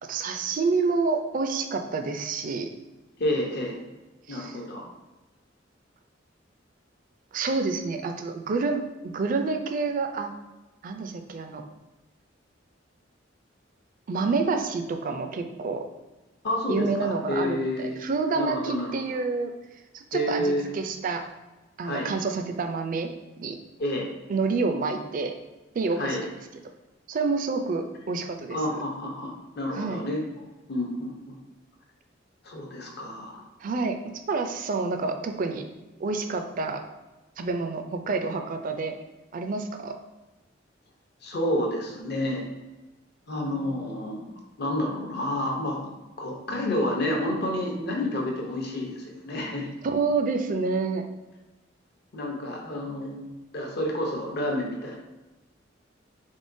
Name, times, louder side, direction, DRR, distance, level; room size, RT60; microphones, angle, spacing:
voice 1, 0.0-2.7 4.3-4.6 7.3-10.3 10.8-11.6 14.1-15.8 16.7-19.5 19.9-21.2 21.8-23.1 23.4-23.6 24.3-25.3 25.7-26.3 27.1-28.8 29.7-30.0 33.6-34.0 34.3-35.6 36.0-36.8 37.4-39.0 39.3-40.0 49.8-51.0, right 4 dB, 45° right, 6 dB, 0.4 m, -28 dB
voice 2, 3.2-3.8 4.3-4.9 16.4-17.9 18.3-18.9 20.1-20.7 21.8-22.1 23.8-24.1 26.0-26.2 28.5-30.2 30.7-31.4 32.4-33.4 41.2-42.5 43.3-44.2 44.6-45.8 46.2-49.7 52.1-55.0, left 1 dB, 60° left, 0 dB, 0.8 m, -29 dB
3.6 x 3.6 x 2.6 m, 1.1 s
head